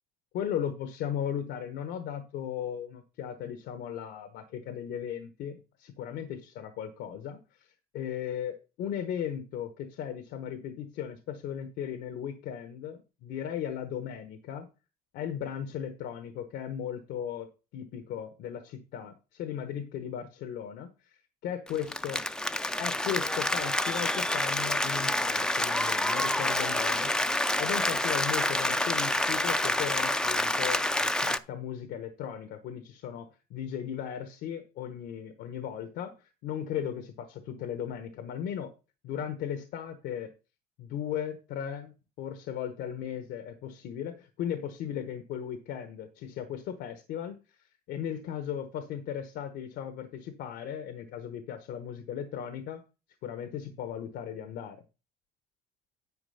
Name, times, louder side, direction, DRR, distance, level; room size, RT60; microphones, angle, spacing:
voice 1, 0.3-14.7 15.1-21.2 21.4-22.2 22.8-27.1 27.6-38.7 39.0-40.3 40.8-47.6 47.9-52.8 53.2-54.8, left 9 dB, 80° left, 9 dB, 1.0 m, -37 dB
Applause, 21.7-31.4, left 1 dB, 5° left, 0.4 m, -28 dB
9.7 x 4.8 x 5.5 m, 0.31 s
cardioid pair, 110°, 17 cm